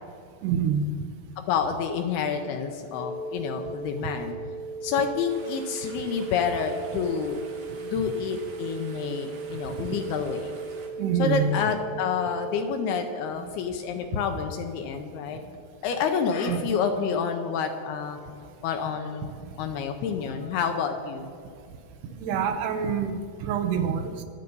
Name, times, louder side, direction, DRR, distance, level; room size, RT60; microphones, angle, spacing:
voice 1, 0.4-0.9 7.9-8.0 11.0-11.6 13.3-13.5 16.5-16.8 22.2-24.2, right 7 dB, 75° right, 7 dB, 2.7 m, -26 dB
voice 2, 1.4-4.4 4.8-7.4 7.8-10.5 11.2-15.4 15.8-18.2 18.6-19.3 19.6-21.3, left 6 dB, 75° left, 6 dB, 2.5 m, -28 dB
sound 1, 2.9-12.9, right 3 dB, 10° right, 2.3 m, -37 dB
sound 2, 5.3-10.9, right 3 dB, 50° right, 2.7 m, -49 dB
24.0 x 8.2 x 5.4 m, 2.3 s
omnidirectional pair, 5.1 m